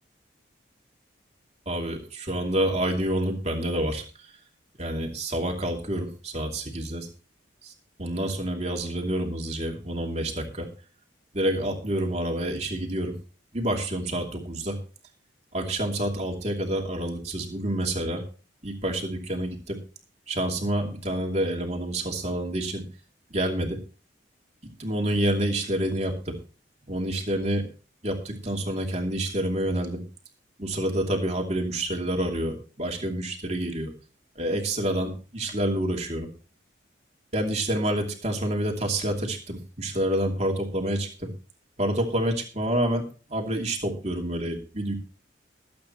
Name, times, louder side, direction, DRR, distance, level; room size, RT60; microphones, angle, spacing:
voice 1, 1.7-4.0 4.8-7.1 7.6-7.7 8.0-10.7 11.3-13.1 13.5-14.8 15.5-18.2 18.6-19.8 20.3-22.8 23.3-23.8 24.8-26.4 26.9-27.7 28.0-30.0 30.6-33.9 34.4-36.3 37.3-41.3 41.8-44.9, right 1 dB, 35° right, 1 dB, 2.8 m, -28 dB
21.0 x 8.7 x 3.1 m, 0.36 s
head